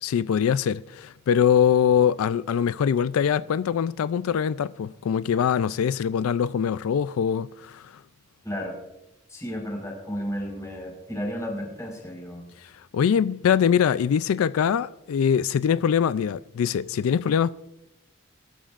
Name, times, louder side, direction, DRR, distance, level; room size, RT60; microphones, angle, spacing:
voice 1, 0.0-7.9 12.6-17.5, left 8 dB, 85° left, 0.3 m, -23 dB
voice 2, 8.4-8.8 9.3-12.4, equal, 15° left, 4.5 m, -33 dB
23.5 x 12.5 x 2.5 m
head